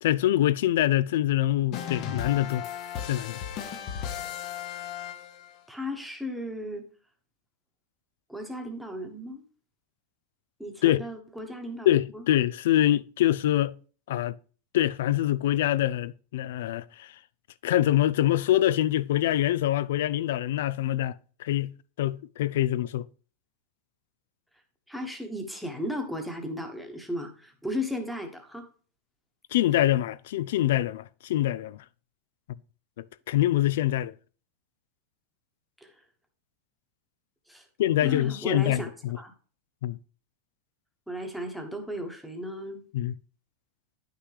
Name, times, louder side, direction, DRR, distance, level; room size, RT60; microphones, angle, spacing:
voice 1, 0.0-2.7 3.0-3.4 10.8-11.0 11.9-13.7 14.1-14.3 14.7-17.1 17.6-23.1 29.5-31.8 33.3-34.1 37.8-39.2 39.8-40.0 42.9-43.1, left 13 dB, 75° left, 0.3 m, -25 dB
sound 1, 1.7-5.6, left 9 dB, 40° left, 0.8 m, -36 dB
voice 2, 5.7-6.8 8.3-9.4 10.6-11.9 12.1-12.2 24.9-28.7 35.8-35.9 37.5-37.6 38.0-38.9 39.2-39.3 41.1-42.8, left 1 dB, ahead, 1.1 m, -35 dB
9.6 x 5.8 x 3.3 m
supercardioid pair, 155°, 0 cm